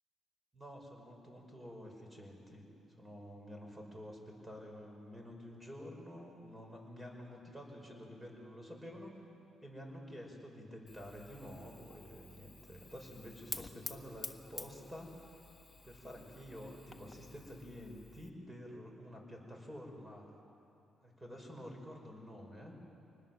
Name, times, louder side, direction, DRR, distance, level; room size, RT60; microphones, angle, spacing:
voice 1, 0.5-2.6 3.0-9.1 9.6-15.2 15.8-20.3 21.0-22.7, equal, 15° right, 1 dB, 5.6 m, -49 dB
Fire, 10.9-18.3, left 3 dB, 20° left, 1.3 m, -50 dB
25.5 x 20.0 x 7.5 m, 2.8 s
cardioid pair, 90°, 0 cm